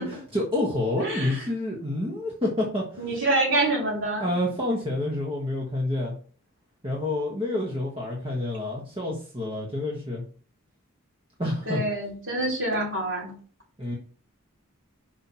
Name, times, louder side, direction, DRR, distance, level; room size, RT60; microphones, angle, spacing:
voice 1, 0.0-3.0 4.2-6.1 6.8-10.2 11.4-11.8 13.8-14.0, left 1 dB, 25° right, -3 dB, 1.3 m, -28 dB
voice 2, 1.0-1.4 3.0-4.3 11.7-13.3, right 2 dB, 55° right, -4 dB, 3.9 m, -26 dB
5.9 x 5.4 x 4.3 m, 0.41 s
head